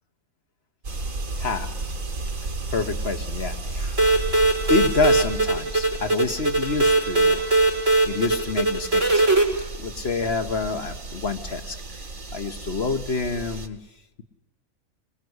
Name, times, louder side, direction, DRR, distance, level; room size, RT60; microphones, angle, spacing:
sound 1, 0.8-13.7, right 2 dB, 75° right, 2.3 m, -33 dB
voice 1, 1.4-1.7 2.7-4.0 4.7-7.7 8.1-9.2 9.8-12.0 12.3-13.8, left 4 dB, 50° left, 7 dB, 1.4 m, -27 dB
sound 2, 4.0-9.5, right 2 dB, 60° right, 4.6 m, -20 dB
26.0 x 21.0 x 8.0 m, 0.96 s
omnidirectional pair, 1.4 m